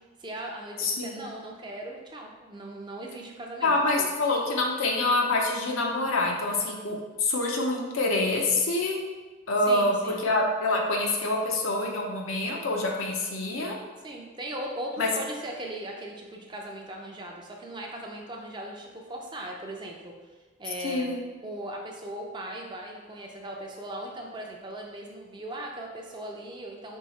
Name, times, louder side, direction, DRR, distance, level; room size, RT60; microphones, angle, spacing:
voice 1, 0.2-4.1 9.6-10.2 14.0-20.1 20.6-21.1 21.4-27.0, right 1 dB, 20° right, 1 dB, 0.5 m, -38 dB
voice 2, 0.8-1.2 3.6-9.0 9.5-9.9 10.2-13.8 15.0-15.1 20.8-21.2, left 2 dB, 80° left, -1 dB, 0.6 m, -26 dB
4.7 x 2.8 x 4.1 m, 1.3 s
head